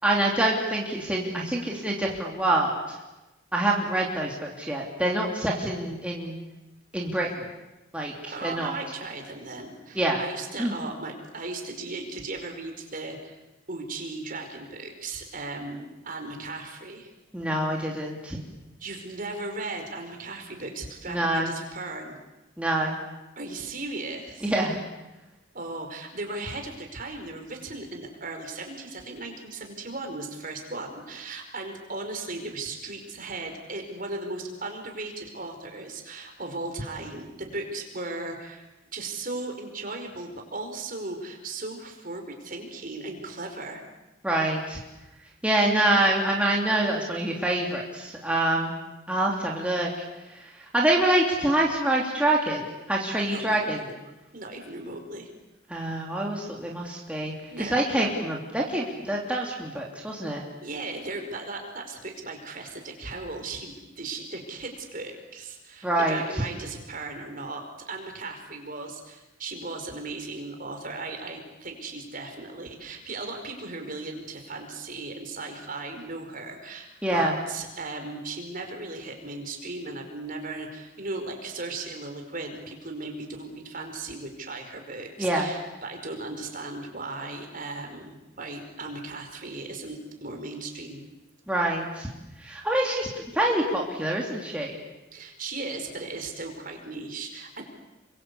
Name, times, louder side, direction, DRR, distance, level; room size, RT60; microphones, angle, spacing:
voice 1, 0.0-2.7 3.5-6.4 6.9-7.3 7.9-8.7 10.0-10.2 10.6-10.7 17.3-18.4 21.1-21.5 22.6-22.9 24.4-24.8 44.2-44.8 45.4-48.7 49.1-49.9 50.3-52.6 52.9-53.8 55.7-57.3 57.6-60.4 65.8-66.2 77.0-77.3 85.2-85.5 91.5-92.1 92.4-93.1 93.3-94.7, right 1 dB, 5° right, -2 dB, 3.0 m, -26 dB
voice 2, 8.3-13.4 13.7-17.1 18.8-22.2 23.3-24.5 25.5-43.8 53.1-54.0 54.3-55.3 57.5-58.2 60.6-91.0 95.1-97.6, right 3 dB, 45° right, 4 dB, 4.9 m, -37 dB
29.0 x 24.5 x 8.4 m, 1.0 s
head